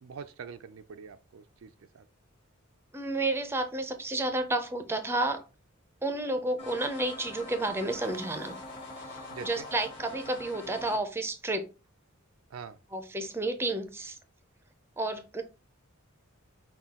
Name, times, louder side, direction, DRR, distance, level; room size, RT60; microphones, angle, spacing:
voice 1, 0.0-2.1 9.3-9.7 12.5-12.8, right 6 dB, 70° right, 0.4 m, -44 dB
voice 2, 2.9-5.4 6.0-8.6 9.4-11.7 12.9-14.2 15.0-15.4, right 2 dB, 10° right, 0.5 m, -31 dB
sound 1, 6.6-11.0, left 2 dB, 30° left, 1.2 m, -44 dB
sound 2, 7.8-9.9, left 3 dB, 50° left, 0.9 m, -48 dB
5.7 x 2.3 x 3.5 m
head